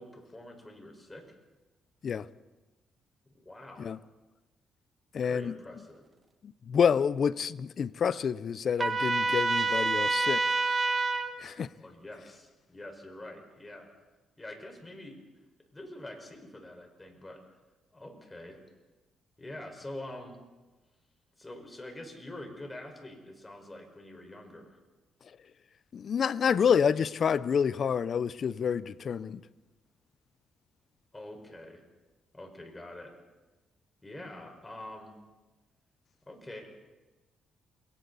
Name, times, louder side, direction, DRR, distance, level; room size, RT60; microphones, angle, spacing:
voice 1, 0.0-1.3 3.3-3.9 5.2-6.0 11.8-13.9 14.4-15.2 15.7-17.4 17.9-18.6 19.4-20.4 21.4-24.8 31.1-31.8 32.3-33.1 34.0-35.1 36.3-36.9, left 1 dB, 15° left, 4.9 m, -45 dB
voice 2, 5.1-5.6 6.4-10.4 11.4-11.7 25.9-29.4, left 7 dB, 50° left, 0.6 m, -28 dB
Trumpet, 8.8-11.3, right 3 dB, 30° right, 1.7 m, -27 dB
29.0 x 22.0 x 4.1 m
cardioid pair, 90°, 0 cm